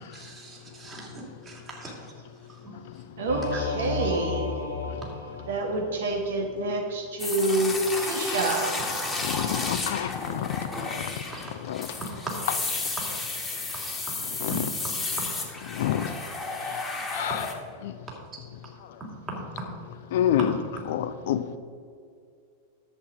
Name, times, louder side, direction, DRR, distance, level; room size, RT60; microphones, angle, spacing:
voice 1, 0.1-1.9 2.6-2.7 12.3-12.4 13.7-13.9 14.5-14.6 19.0-19.6, right 2 dB, 25° right, -2 dB, 2.8 m, -38 dB
voice 2, 3.2-4.5 5.5-8.8, right 2 dB, 60° right, 3 dB, 1.4 m, -27 dB
Singing / Musical instrument, 3.3-6.1, left 4 dB, 70° left, 1.6 m, -32 dB
sound 1, 7.2-17.5, left 3 dB, 15° left, 1.6 m, -32 dB
voice 3, 9.2-10.5 10.8-11.1 11.7-11.9 12.5-12.6 14.4-14.7 15.8-16.1 17.1-17.5 17.8-17.9 20.1-20.6 20.9-21.4, left 11 dB, 55° left, 12 dB, 0.5 m, -27 dB
10.5 x 7.9 x 5.1 m, 2.3 s
figure-of-eight pair, 90°, 0 cm